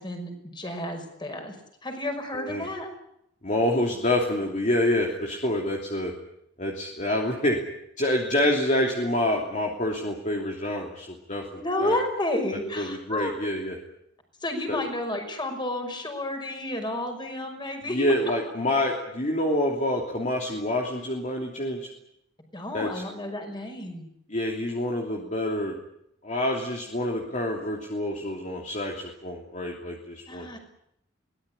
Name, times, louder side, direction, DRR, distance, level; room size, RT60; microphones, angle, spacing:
voice 1, 0.0-1.5 1.8-2.9 11.5-13.4 14.4-18.1 22.5-24.0 30.3-30.6, left 1 dB, 25° left, 5 dB, 5.8 m, -31 dB
voice 2, 2.3-2.7 3.4-6.1 6.6-7.6 8.0-12.0 12.7-13.8 14.7-14.8 17.9-21.9 22.7-23.0 24.3-25.7 26.2-30.6, left 1 dB, 40° left, 0 dB, 3.0 m, -27 dB
23.5 x 18.5 x 9.8 m, 0.77 s
head